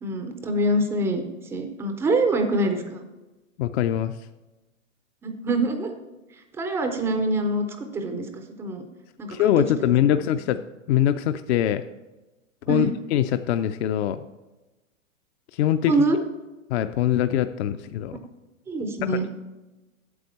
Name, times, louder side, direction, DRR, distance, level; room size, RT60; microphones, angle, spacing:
voice 1, 0.0-3.0 5.2-5.9 6.6-8.8 9.2-9.4 9.8-10.2 12.7-12.9 15.9-16.2 18.7-19.3, right 2 dB, 5° right, 6 dB, 0.3 m, -25 dB
voice 2, 3.6-4.2 9.3-10.6 10.9-11.8 12.7-14.2 15.5-15.9 16.7-18.2 19.1-19.3, left 11 dB, 55° left, 10 dB, 0.5 m, -23 dB
8.2 x 7.8 x 4.2 m, 1.1 s
hypercardioid pair, 120°, 39 cm